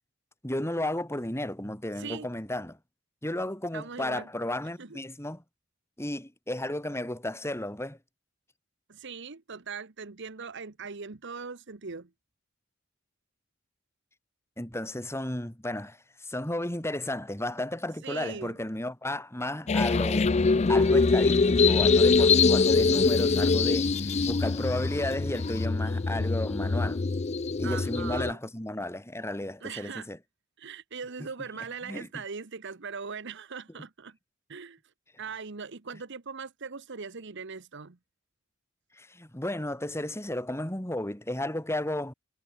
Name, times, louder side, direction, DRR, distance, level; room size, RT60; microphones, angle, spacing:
voice 1, 0.4-2.8 3.2-5.4 6.0-8.0 14.6-20.3 20.7-27.0 27.6-30.2 31.9-32.1 39.0-42.1, left 1 dB, 15° left, 3.3 m, -33 dB
voice 2, 2.0-2.3 3.7-4.3 4.8-5.0 8.9-12.1 18.0-18.6 27.6-28.4 29.6-30.1 30.6-34.2 34.5-34.8 35.2-38.0, right 5 dB, 60° right, 1.1 m, -40 dB
sound 1, 19.7-28.3, left 4 dB, 35° left, 0.5 m, -23 dB
head